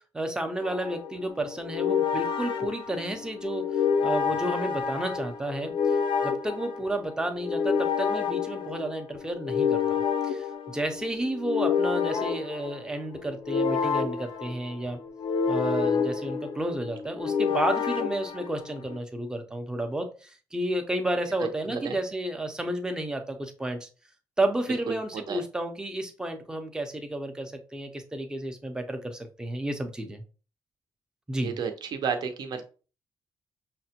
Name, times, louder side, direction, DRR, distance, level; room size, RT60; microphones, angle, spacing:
voice 1, 0.1-3.6 4.0-6.0 6.2-10.0 10.2-15.0 15.5-23.9 24.4-30.2 31.3-31.5, right 1 dB, 10° right, 6 dB, 0.5 m, -31 dB
sound 1, 0.6-19.0, left 6 dB, 80° left, 0.5 m, -29 dB
voice 2, 24.7-25.4 31.4-32.6, right 6 dB, 55° right, 6 dB, 0.6 m, -32 dB
5.7 x 2.1 x 2.8 m, 0.36 s
cardioid pair, 150°, 8 cm